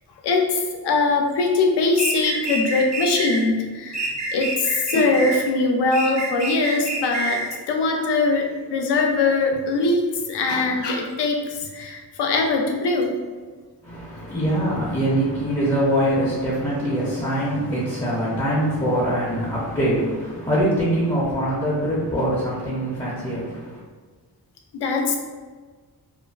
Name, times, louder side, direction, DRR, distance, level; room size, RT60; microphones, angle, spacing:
voice 1, 0.2-10.0 10.3-13.2 24.7-25.2, left 3 dB, 80° left, 2 dB, 0.5 m, -22 dB
sound 1, 2.0-3.4 3.9-5.5 5.9-7.5, right 2 dB, 45° right, 0.5 m, -28 dB
voice 2, 13.8-23.8, equal, 15° left, -7 dB, 0.5 m, -23 dB
2.4 x 2.3 x 2.3 m, 1.4 s
wide cardioid pair, 115°, 39 cm